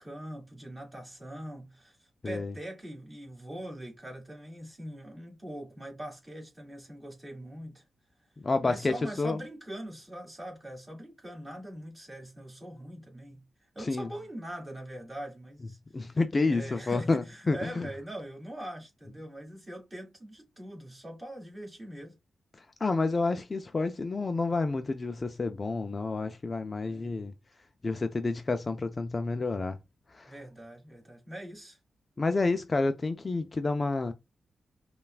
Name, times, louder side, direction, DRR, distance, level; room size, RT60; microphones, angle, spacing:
voice 1, 0.0-7.8 8.6-13.5 13.7-16.2 16.5-22.2 26.8-27.1 30.3-31.8, right 1 dB, 15° right, 2.2 m, -42 dB
voice 2, 8.4-9.4 13.8-14.1 15.9-17.9 22.8-27.3 27.8-29.8 30.1-30.3 32.2-34.1, left 3 dB, 30° left, 0.3 m, -29 dB
5.4 x 2.3 x 2.3 m
wide cardioid pair, 105°, 0 cm